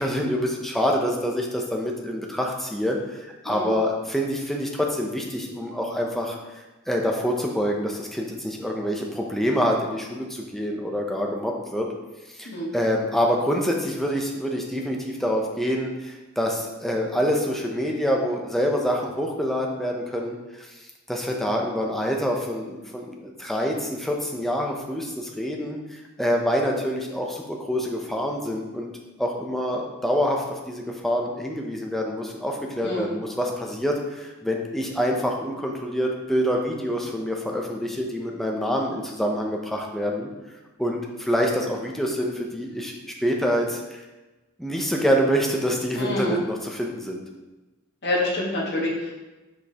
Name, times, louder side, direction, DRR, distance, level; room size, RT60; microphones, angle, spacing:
voice 1, 0.0-6.4 6.9-11.9 12.3-20.8 21.1-28.9 29.2-40.3 40.8-44.0 44.6-47.2, equal, ahead, 0 dB, 0.6 m, -26 dB
voice 2, 46.0-46.4 48.0-49.1, left 1 dB, 55° left, -4 dB, 1.4 m, -27 dB
6.3 x 5.1 x 2.9 m, 1.1 s
head